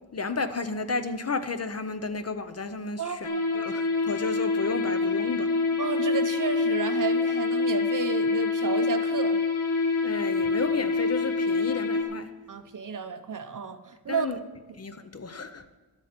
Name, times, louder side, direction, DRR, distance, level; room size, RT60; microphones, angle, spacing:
voice 1, 0.1-3.3 3.5-5.5 10.0-12.3 14.1-14.4 14.8-15.7, left 4 dB, 35° left, 0.6 m, -32 dB
voice 2, 3.0-3.8 5.8-9.4 12.5-14.5, right 6 dB, 40° right, 0.7 m, -32 dB
sound 1, 3.2-12.0, left 4 dB, 80° left, 2.0 m, -26 dB
13.0 x 12.0 x 5.1 m
wide cardioid pair, 170°, 48 cm